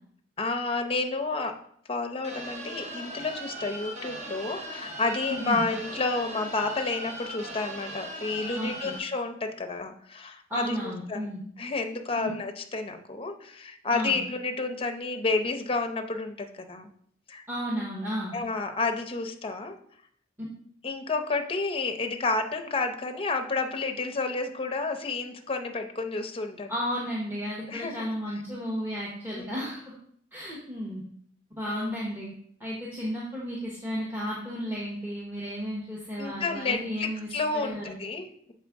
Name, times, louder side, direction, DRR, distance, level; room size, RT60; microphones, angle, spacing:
voice 1, 0.4-1.6 1.9-11.3 11.6-16.9 17.3-17.4 18.3-19.8 20.8-26.7 27.7-28.1 29.4-29.6 31.7-31.9 36.2-38.5, left 3 dB, 30° left, 6 dB, 0.6 m, -30 dB
sound 1, 2.2-9.0, right 1 dB, 35° right, 0.8 m, -39 dB
voice 2, 5.3-5.6 8.6-8.9 10.5-11.4 12.1-12.3 13.9-14.2 17.5-18.3 26.7-29.9 30.3-31.0 31.6-32.3 32.6-38.0, equal, 10° right, -5 dB, 1.0 m, -33 dB
7.2 x 4.4 x 3.5 m, 0.64 s
head